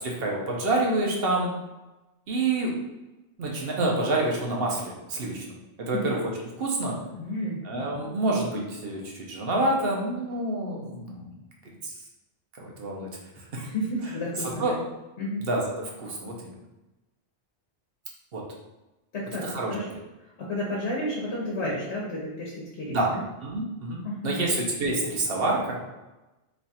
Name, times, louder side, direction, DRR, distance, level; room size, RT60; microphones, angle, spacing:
voice 1, 0.0-1.5 2.3-2.7 3.4-5.5 5.8-6.2 6.6-7.0 7.6-11.3 11.8-11.9 12.6-13.1 13.4-13.7 14.6-14.8 15.4-16.5 18.3-18.4 19.4-19.7 22.9-23.1 23.4-25.8, right 2 dB, 65° right, -1 dB, 0.9 m, -27 dB
voice 2, 7.2-7.6 13.6-14.8 15.2-15.4 19.1-19.9 20.4-23.2 24.0-24.5, left 1 dB, 80° left, -5 dB, 1.2 m, -31 dB
3.1 x 2.4 x 4.1 m, 1.0 s
omnidirectional pair, 1.1 m